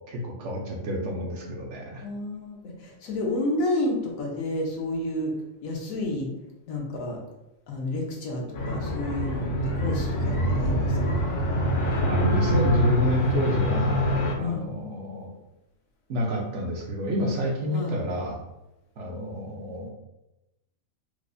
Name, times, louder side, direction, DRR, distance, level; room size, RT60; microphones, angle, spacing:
voice 1, 0.1-2.1 12.1-14.1 14.4-15.3 16.1-18.4 19.0-19.9, equal, 65° right, 0 dB, 0.9 m, -28 dB
voice 2, 2.0-5.3 5.6-6.3 6.7-7.2 7.7-11.3 14.4-14.7 17.7-17.9, left 1 dB, 85° left, -1 dB, 1.2 m, -30 dB
sound 1, 8.5-14.3, equal, 65° left, 0.9 m, -25 dB
4.6 x 2.0 x 2.5 m, 0.93 s
omnidirectional pair, 1.4 m